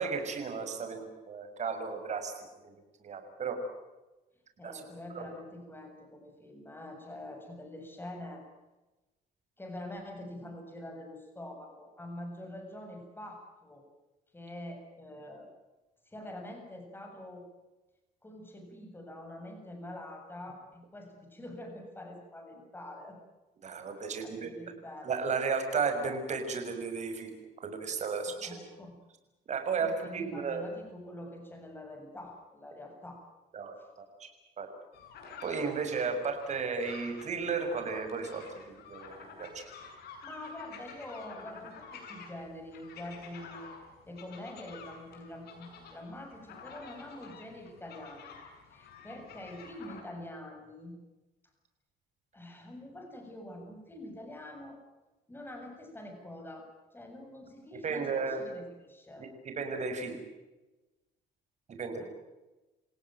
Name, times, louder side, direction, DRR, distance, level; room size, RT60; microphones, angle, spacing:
voice 1, 0.0-2.3 2.6-2.7 3.0-3.6 4.6-4.8 5.1-5.3 23.6-24.5 25.0-27.3 27.6-28.5 29.5-30.6 33.5-34.3 34.6-34.7 35.4-39.6 57.8-58.4 59.2-60.2 61.8-62.1, right 5 dB, 45° right, 6 dB, 6.5 m, -34 dB
voice 2, 4.6-8.4 9.6-13.8 14.3-15.5 16.1-17.4 18.2-23.2 24.2-25.1 28.4-28.9 29.8-33.2 40.2-43.8 44.1-48.3 48.7-51.0 52.3-54.8 55.3-59.3 62.0-62.1, left 1 dB, 10° left, 3 dB, 7.3 m, -45 dB
sound 1, 34.9-50.0, left 5 dB, 70° left, 7.4 m, -50 dB
29.0 x 17.5 x 9.3 m, 1.1 s
cardioid pair, 110°, 17 cm